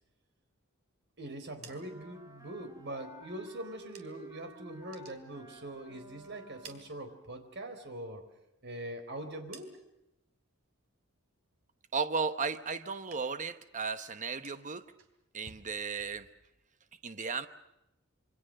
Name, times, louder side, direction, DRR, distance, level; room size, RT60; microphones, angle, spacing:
voice 1, 1.2-8.2 8.6-9.7, right 1 dB, 55° right, 7 dB, 4.1 m, -43 dB
sound 1, 1.5-4.4 4.7-6.0 6.3-7.7 8.0-10.2 10.5-11.0 11.3-12.7 12.9-13.5 13.8-16.6, right 6 dB, 75° right, 3.5 m, -59 dB
Wind instrument woodwind instrument, 1.6-7.0, right 2 dB, 15° right, 4.4 m, -53 dB
voice 2, 11.9-14.9 15.3-16.3 17.0-17.5, right 5 dB, 35° right, 10 dB, 1.1 m, -35 dB
27.0 x 25.0 x 6.5 m, 0.89 s
head